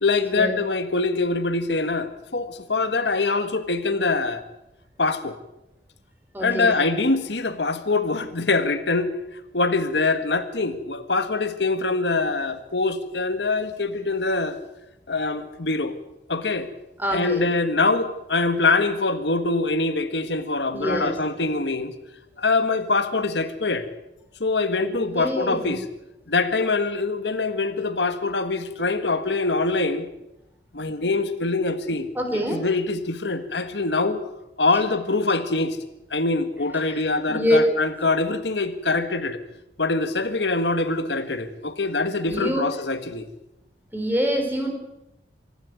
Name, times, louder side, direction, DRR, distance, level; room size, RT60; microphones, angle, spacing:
voice 1, 0.0-4.4 5.0-5.3 6.4-9.1 9.5-14.6 15.1-16.0 16.3-16.7 17.1-21.9 22.4-23.9 24.4-25.8 26.3-30.1 30.7-32.1 32.5-34.3 34.6-35.8 36.1-39.4 39.8-43.3, left 3 dB, 85° left, 10 dB, 1.7 m, -24 dB
voice 2, 6.3-6.8 17.0-17.4 20.7-21.2 24.8-25.8 32.2-32.6 36.7-37.0 37.3-37.6 42.3-42.7 43.9-44.7, equal, 10° right, 4 dB, 3.9 m, -25 dB
25.0 x 12.0 x 9.3 m, 0.90 s
head